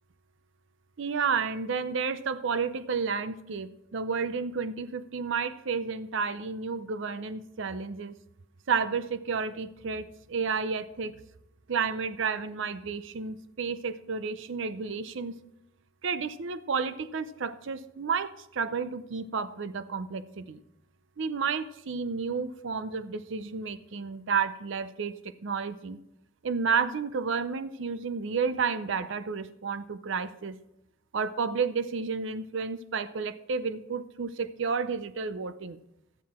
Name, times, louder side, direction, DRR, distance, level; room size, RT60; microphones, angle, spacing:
voice 1, 1.0-8.1 8.7-11.1 11.7-15.3 16.0-20.6 21.2-26.0 26.4-30.6 31.1-35.8, right 5 dB, 65° right, 14 dB, 0.6 m, -31 dB
12.5 x 9.4 x 4.3 m, 0.84 s
head